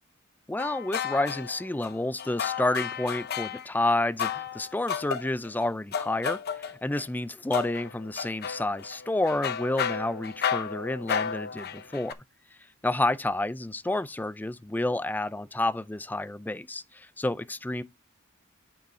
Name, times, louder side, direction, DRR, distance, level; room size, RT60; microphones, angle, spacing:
voice 1, 0.5-12.1 12.8-17.8, left 2 dB, 10° left, 0.3 m, -29 dB
sound 1, 0.6-3.7 4.2-7.1 7.5-12.1, left 7 dB, 50° left, 0.6 m, -33 dB
8.0 x 5.4 x 4.2 m
head